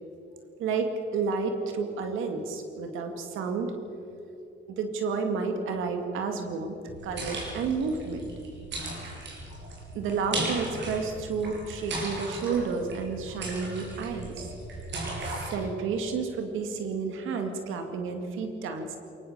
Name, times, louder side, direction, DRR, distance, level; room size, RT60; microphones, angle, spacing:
voice 1, 0.6-3.7 4.7-6.7 7.0-8.3 9.9-14.4 15.4-19.0, right 5 dB, 90° right, 5 dB, 2.2 m, -31 dB
sound 1, 6.9-15.5, right 2 dB, 65° right, 6.7 m, -36 dB
23.0 x 20.0 x 6.7 m, 2.8 s
cardioid pair, 90°, 20 cm